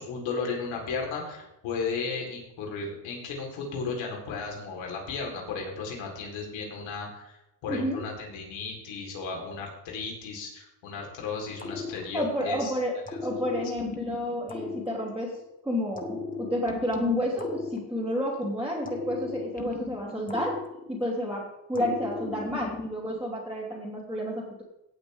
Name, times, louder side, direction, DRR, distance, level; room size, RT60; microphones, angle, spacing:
voice 1, 0.0-7.3 7.6-12.7 13.1-13.2, left 4 dB, 80° left, 0 dB, 4.2 m, -34 dB
voice 2, 7.7-8.0 11.9-15.4 15.6-24.6, equal, 5° right, -8 dB, 3.2 m, -30 dB
sound 1, 11.6-12.6 13.1-15.5 16.0-18.4 18.9-21.3 21.7-23.2, left 4 dB, 20° left, 1.3 m, -37 dB
17.5 x 8.8 x 3.6 m, 0.87 s
cardioid pair, 135°, 45 cm